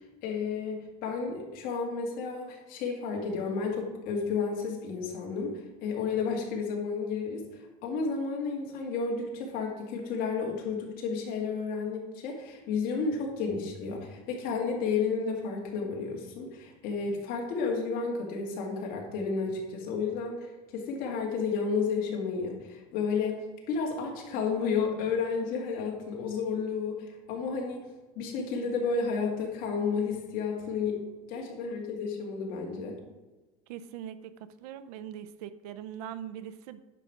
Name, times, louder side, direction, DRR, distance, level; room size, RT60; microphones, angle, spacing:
voice 1, 0.0-5.5 5.8-23.4 23.7-27.9 28.2-31.0 31.3-33.0, left 5 dB, 50° left, 0 dB, 2.3 m, -32 dB
voice 2, 33.7-34.3 34.6-36.8, right 10 dB, 85° right, 13 dB, 0.6 m, -41 dB
9.7 x 6.2 x 4.9 m, 1.1 s
cardioid pair, 155°, 19 cm